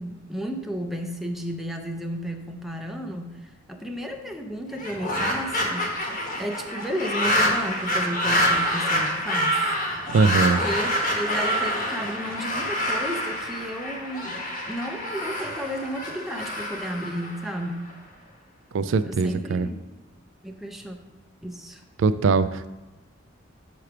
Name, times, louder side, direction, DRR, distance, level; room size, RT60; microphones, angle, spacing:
voice 1, 0.0-5.9 6.4-9.6 10.4-17.9 19.0-19.8 20.4-21.0 21.4-21.8, equal, ahead, 3 dB, 0.4 m, -33 dB
sound 1, 4.7-17.9, equal, 45° left, 1.3 m, -27 dB
voice 2, 10.1-10.6 18.7-19.7 22.0-22.7, right 4 dB, 65° right, 13 dB, 0.3 m, -21 dB
6.8 x 3.3 x 5.8 m, 1.1 s
head